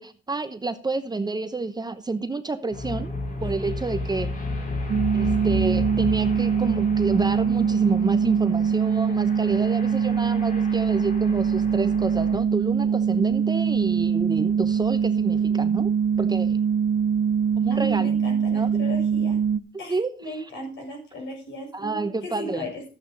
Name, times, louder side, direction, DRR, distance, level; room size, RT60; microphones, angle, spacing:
voice 1, 0.0-3.1 3.4-4.3 5.1-15.9 16.2-16.6 17.6-18.2 18.5-18.8 19.9-20.5 21.7-22.6, right 3 dB, 20° right, 0.9 m, -29 dB
sound 1, 2.7-12.4, left 2 dB, 45° left, 4.5 m, -33 dB
sound 2, 4.9-19.6, right 7 dB, 50° right, 0.7 m, -23 dB
voice 2, 17.7-19.4 19.8-22.8, equal, 70° left, 6.8 m, -36 dB
13.0 x 8.6 x 3.9 m
cardioid pair, 90°, 20 cm